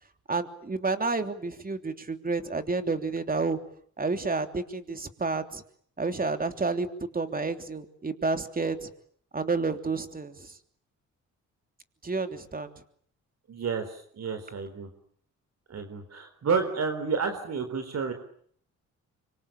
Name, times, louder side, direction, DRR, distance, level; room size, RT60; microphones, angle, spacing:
voice 1, 0.3-3.6 4.0-5.6 6.0-6.9 7.1-8.9 9.3-10.5 12.0-12.7, right 3 dB, 30° right, 8 dB, 3.3 m, -30 dB
voice 2, 13.5-14.9 15.7-18.1, right 5 dB, 55° right, 7 dB, 4.0 m, -30 dB
25.5 x 25.0 x 8.9 m, 0.62 s
cardioid pair, 80°, 30 cm